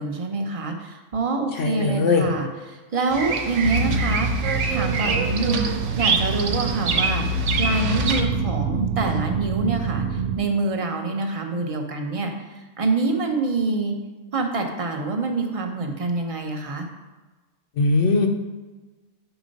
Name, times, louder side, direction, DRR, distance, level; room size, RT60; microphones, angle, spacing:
voice 1, 0.0-5.7 6.0-7.3 7.6-12.3 12.8-14.0 14.3-16.9, right 3 dB, 35° right, 3 dB, 0.7 m, -26 dB
voice 2, 1.6-2.3 17.8-18.3, left 3 dB, 70° left, 2 dB, 1.1 m, -20 dB
Bird vocalization bird call bird song, 3.1-8.2, right 5 dB, 70° right, 1.0 m, -26 dB
sound 1, 3.6-10.4, right 3 dB, 85° right, 1.0 m, -26 dB
7.0 x 4.4 x 5.2 m, 1.2 s
omnidirectional pair, 1.4 m